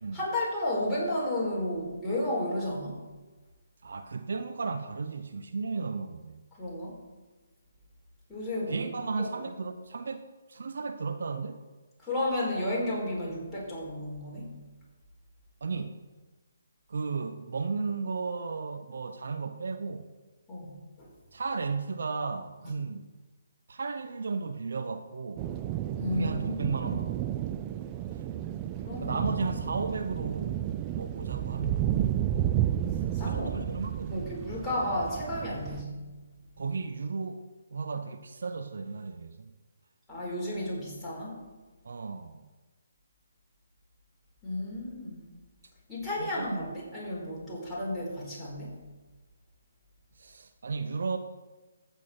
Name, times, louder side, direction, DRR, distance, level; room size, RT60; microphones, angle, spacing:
voice 1, 0.1-3.0 6.6-6.9 8.3-8.8 9.2-9.4 12.0-14.5 20.5-21.1 26.0-26.7 28.8-29.2 33.1-33.7 34.1-36.0 40.1-41.4 44.4-45.3 45.9-48.8, left 1 dB, 5° left, -8 dB, 4.3 m, -33 dB
voice 2, 3.8-6.4 8.7-11.6 15.6-16.0 16.9-20.1 21.3-23.1 23.7-25.5 26.1-27.4 28.1-28.2 29.0-30.6 30.9-32.0 33.1-34.3 36.6-37.4 37.7-39.5 41.8-42.4 46.2-46.7 47.5-47.6 50.2-51.2, right 4 dB, 55° right, 8 dB, 0.7 m, -34 dB
sound 1, 25.4-35.8, right 11 dB, 25° right, 0.4 m, -32 dB
14.5 x 8.0 x 4.3 m, 1.2 s
figure-of-eight pair, 140°, 0 cm